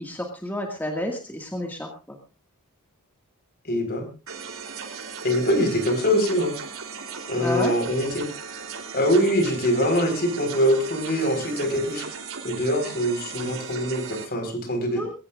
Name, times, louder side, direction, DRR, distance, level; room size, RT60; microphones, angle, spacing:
voice 1, 0.0-2.2 7.3-7.8 15.0-15.1, left 1 dB, 10° left, 1 dB, 2.0 m, -30 dB
voice 2, 3.6-4.1 5.2-6.5 7.3-8.3 8.9-12.1 12.4-15.0, equal, 45° left, 7 dB, 4.6 m, -23 dB
sound 1, 4.3-14.3, right 6 dB, 70° right, 3.4 m, -37 dB
21.0 x 18.0 x 2.5 m, 0.32 s
head